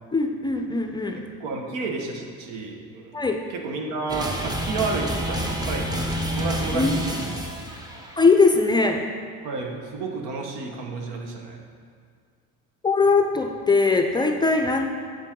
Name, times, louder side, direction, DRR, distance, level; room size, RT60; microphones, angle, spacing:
voice 1, 0.1-1.2 3.1-3.4 6.7-7.0 8.2-9.0 12.8-14.9, left 4 dB, 15° left, 3 dB, 0.5 m, -20 dB
voice 2, 1.2-3.1 3.5-7.2 9.4-11.6, right 3 dB, 75° right, 2 dB, 1.2 m, -31 dB
sound 1, 4.1-8.3, equal, 10° right, 0.8 m, -28 dB
7.9 x 7.2 x 3.7 m, 2.1 s
cardioid pair, 110°, 33 cm